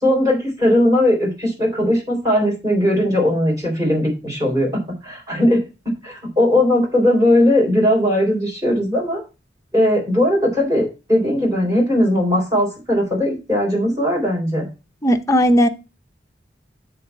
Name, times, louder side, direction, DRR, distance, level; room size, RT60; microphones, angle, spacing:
voice 1, 0.0-5.6 6.0-9.2 9.7-14.7, left 1 dB, 20° right, -2 dB, 3.8 m, -18 dB
voice 2, 15.0-15.7, equal, 15° left, 6 dB, 0.6 m, -15 dB
7.7 x 3.9 x 5.5 m, 0.30 s
head